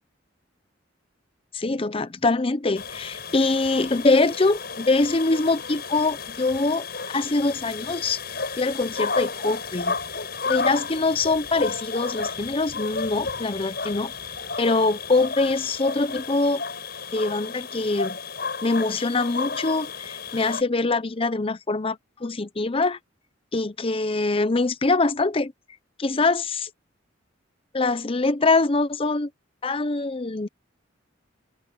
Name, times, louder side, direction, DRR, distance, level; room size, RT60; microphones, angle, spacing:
voice 1, 1.5-8.2 8.6-10.0 10.5-14.1 14.6-16.6 17.1-18.2 18.6-23.0 23.5-25.5 26.0-26.5 27.7-29.3 29.6-30.5, left 3 dB, 30° left, 0.7 m, -23 dB
sound 1, 2.8-20.6, left 4 dB, 50° left, 7.2 m, -32 dB
open air
head